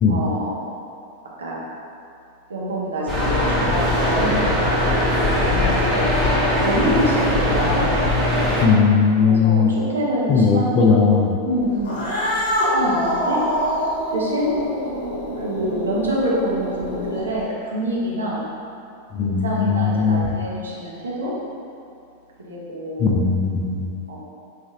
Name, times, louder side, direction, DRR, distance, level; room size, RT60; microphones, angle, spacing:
voice 1, 0.1-0.5 1.4-1.6 2.5-4.4 5.4-5.8 6.6-7.9 9.2-11.1 11.4-12.1 12.7-13.4 14.1-14.5 15.4-18.4 19.2-21.3 22.4-23.1 24.1-24.2, equal, 70° right, -5 dB, 0.6 m, -26 dB
sound 1, 3.1-8.6, left 1 dB, 5° left, 0.8 m, -20 dB
voice 2, 8.6-9.8 10.3-11.4 19.1-20.4 23.0-23.9, left 5 dB, 35° left, -1 dB, 0.4 m, -18 dB
Cat, 11.8-17.4, equal, 50° left, 1.1 m, -25 dB
3.9 x 2.4 x 2.7 m, 2.6 s
figure-of-eight pair, 90°, 0 cm